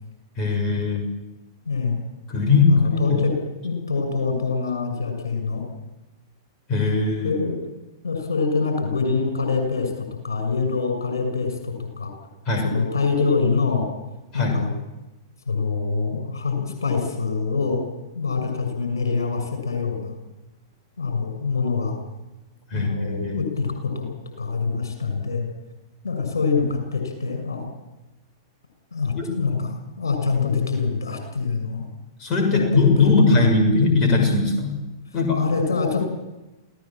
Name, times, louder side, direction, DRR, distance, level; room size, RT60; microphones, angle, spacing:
voice 1, 0.4-1.1 2.3-3.2 6.7-7.4 12.5-12.7 14.3-14.6 22.7-23.4 29.2-29.3 32.2-34.8 35.1-35.4, left 3 dB, 30° left, 2 dB, 6.5 m, -20 dB
voice 2, 1.6-2.1 2.6-3.3 3.6-5.6 7.2-7.5 8.0-12.1 12.6-13.9 14.3-14.7 15.5-17.8 18.1-20.2 21.0-22.0 22.7-24.1 24.4-25.4 26.0-27.7 28.9-31.8 32.5-33.5 35.1-36.0, left 4 dB, 70° left, 5 dB, 6.6 m, -25 dB
28.5 x 17.0 x 7.5 m, 1.0 s
figure-of-eight pair, 100°, 2 cm